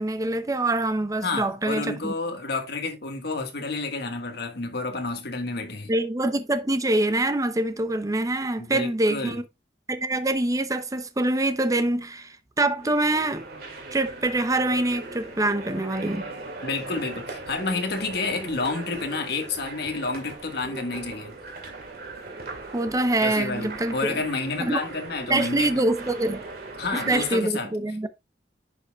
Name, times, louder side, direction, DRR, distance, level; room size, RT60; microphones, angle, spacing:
voice 1, 0.0-2.1 5.9-9.4 9.9-13.4 13.9-16.3 22.7-24.2 24.6-24.8 25.3-26.4 27.1-28.1, right 2 dB, 20° right, 0.6 m, -25 dB
voice 2, 1.2-5.9 8.6-9.4 16.6-21.4 23.2-26.1 26.8-27.7, left 3 dB, 65° left, 1.6 m, -30 dB
sound 1, 12.8-27.4, right 3 dB, 60° right, 2.2 m, -39 dB
10.5 x 5.4 x 2.3 m
head